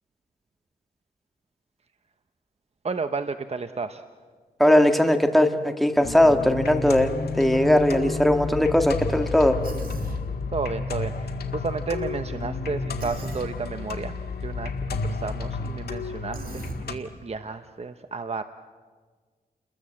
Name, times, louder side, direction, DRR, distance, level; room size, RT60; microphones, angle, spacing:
voice 1, 2.8-4.0 10.5-14.1 14.4-16.6 16.9-18.4, right 4 dB, 40° right, 9 dB, 1.0 m, -32 dB
voice 2, 4.6-9.6, left 1 dB, ahead, 6 dB, 1.9 m, -19 dB
sound 1, 6.0-16.9, left 4 dB, 85° left, 2.0 m, -31 dB
Human voice, 9.6-10.2 13.0-13.5 16.3-16.8, right 3 dB, 65° right, 2.9 m, -36 dB
30.0 x 21.5 x 7.7 m, 1.5 s
cardioid pair, 80°, 16 cm